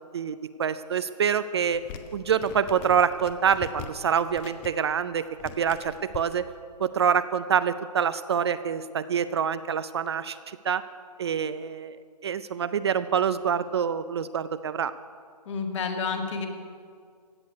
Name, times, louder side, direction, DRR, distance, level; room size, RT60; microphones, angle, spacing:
voice 1, 0.1-1.8 2.1-6.5 6.8-10.8 11.2-12.0 12.2-14.9, right 7 dB, 40° right, 13 dB, 0.4 m, -26 dB
sound 1, 1.7-6.4, left 7 dB, 15° left, 0.5 m, -43 dB
voice 2, 15.5-16.5, left 5 dB, 45° left, 4 dB, 1.8 m, -29 dB
16.0 x 6.6 x 9.4 m, 2.1 s
hypercardioid pair, 145°, 21 cm